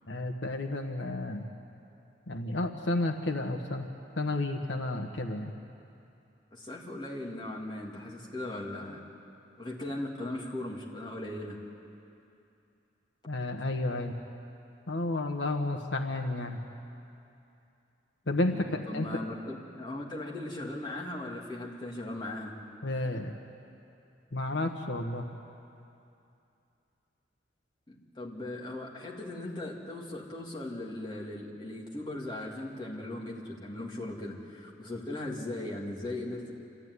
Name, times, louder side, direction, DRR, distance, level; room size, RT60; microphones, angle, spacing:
voice 1, 0.1-1.5 2.3-3.9 4.2-5.5 13.3-14.1 14.9-16.6 18.3-19.2 22.8-23.4 24.3-25.2, left 2 dB, 80° left, 4 dB, 1.3 m, -31 dB
voice 2, 6.5-9.0 9.6-11.6 18.5-22.6 27.9-36.5, left 1 dB, 25° left, -4 dB, 2.8 m, -38 dB
27.0 x 15.0 x 9.7 m, 2.7 s
head